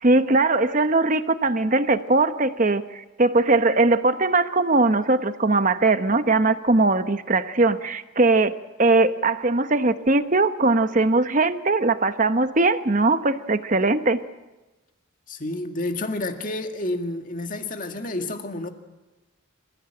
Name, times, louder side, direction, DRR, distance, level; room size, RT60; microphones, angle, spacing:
voice 1, 0.0-14.2, right 3 dB, 35° right, 10 dB, 1.0 m, -20 dB
voice 2, 15.3-18.7, left 2 dB, 40° left, 5 dB, 1.9 m, -30 dB
27.5 x 15.5 x 8.9 m, 1.1 s
head